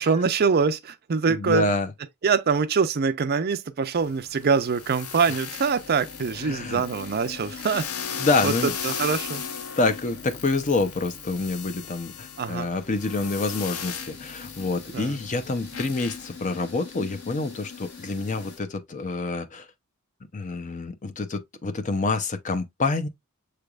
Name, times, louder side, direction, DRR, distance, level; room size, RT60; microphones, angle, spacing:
voice 1, 0.0-1.7 2.2-7.9 8.4-8.5 8.8-9.4 12.4-12.7 14.9-15.2, right 5 dB, 45° right, 0.5 m, -24 dB
voice 2, 1.3-1.9 6.4-6.8 8.2-8.7 9.8-19.7 20.3-23.1, left 3 dB, 35° left, 0.6 m, -27 dB
sound 1, 4.0-18.6, left 7 dB, 80° left, 0.7 m, -38 dB
sound 2, 5.4-18.6, left 5 dB, 50° left, 1.4 m, -44 dB
6.9 x 3.3 x 2.3 m
head